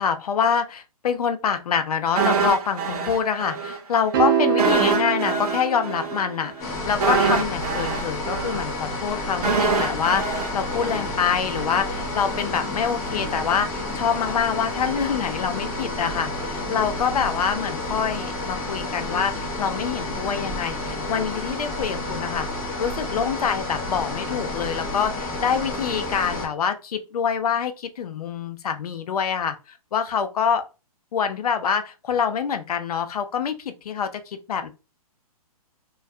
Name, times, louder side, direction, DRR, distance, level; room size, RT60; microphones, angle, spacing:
voice 1, 0.0-22.5 22.8-30.6 31.1-34.7, left 7 dB, 80° left, 0.5 m, -26 dB
sound 1, 2.2-3.8 4.1-4.2 4.6-11.7 12.0-12.1, right 4 dB, 80° right, 0.7 m, -25 dB
sound 2, 4.1-6.6, right 8 dB, 35° right, 0.5 m, -24 dB
sound 3, 6.6-26.5, left 2 dB, 15° left, 0.5 m, -30 dB
2.2 x 2.2 x 2.6 m
hypercardioid pair, 155°, 19 cm